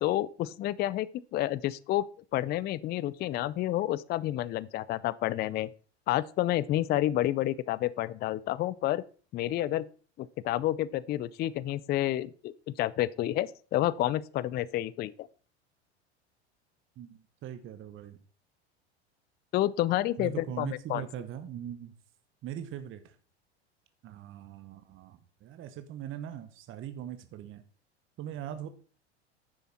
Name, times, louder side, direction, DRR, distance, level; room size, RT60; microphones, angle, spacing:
voice 1, 0.0-2.0 2.3-5.7 6.1-9.0 9.3-9.8 10.2-15.3 19.5-21.0, left 14 dB, 30° left, 0.4 m, -29 dB
voice 2, 17.0-18.2 20.2-21.9 22.4-23.2 24.0-27.6 28.2-28.7, right 10 dB, 35° right, 1.1 m, -41 dB
10.0 x 6.9 x 4.2 m
hypercardioid pair, 90°, 33 cm